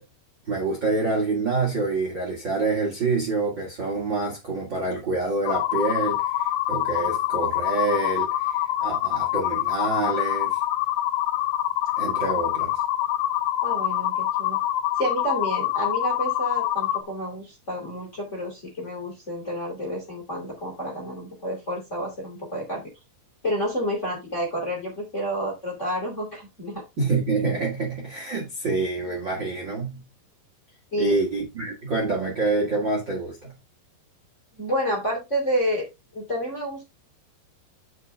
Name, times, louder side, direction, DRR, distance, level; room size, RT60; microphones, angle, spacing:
voice 1, 0.5-10.6 12.0-12.7 27.0-30.0 31.0-33.5, right 3 dB, 35° right, 2.1 m, -27 dB
sound 1, 5.5-17.0, left 13 dB, 85° left, 2.2 m, -25 dB
voice 2, 13.6-14.6 15.0-22.9 23.4-26.8 30.9-31.2 34.5-35.8 36.1-36.8, equal, 20° left, 2.8 m, -29 dB
8.8 x 6.5 x 3.5 m
omnidirectional pair, 5.2 m